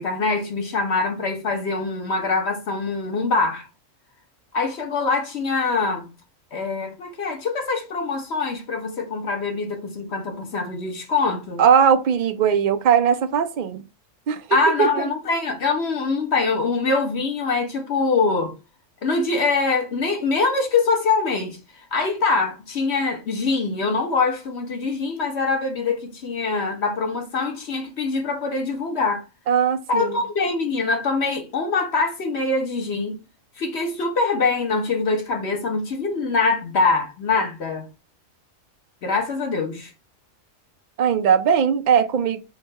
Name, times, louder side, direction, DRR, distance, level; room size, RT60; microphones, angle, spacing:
voice 1, 0.0-3.7 4.5-6.1 6.5-11.6 14.5-18.5 19.0-29.2 29.9-33.2 33.6-37.9 39.0-39.9, left 4 dB, 55° left, 1.3 m, -24 dB
voice 2, 11.6-13.8 14.3-14.5 14.8-15.1 29.5-30.2 41.0-42.4, right 7 dB, 70° right, 0.4 m, -19 dB
3.8 x 2.8 x 4.4 m
omnidirectional pair, 1.4 m